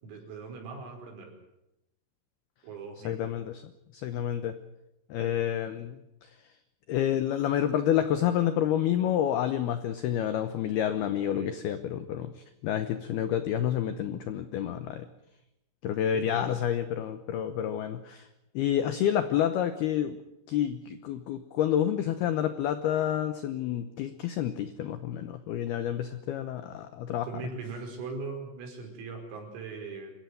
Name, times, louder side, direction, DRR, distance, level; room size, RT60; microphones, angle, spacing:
voice 1, 0.0-1.3 2.6-3.3 11.3-11.5 16.1-16.5 27.2-30.1, right 4 dB, 80° right, 2 dB, 7.7 m, -40 dB
voice 2, 3.0-3.6 3.9-4.6 5.1-6.3 6.9-15.1 15.8-18.3 18.5-20.2 20.5-27.3, left 10 dB, 85° left, 10 dB, 2.2 m, -29 dB
27.0 x 15.0 x 9.3 m, 0.88 s
omnidirectional pair, 6.0 m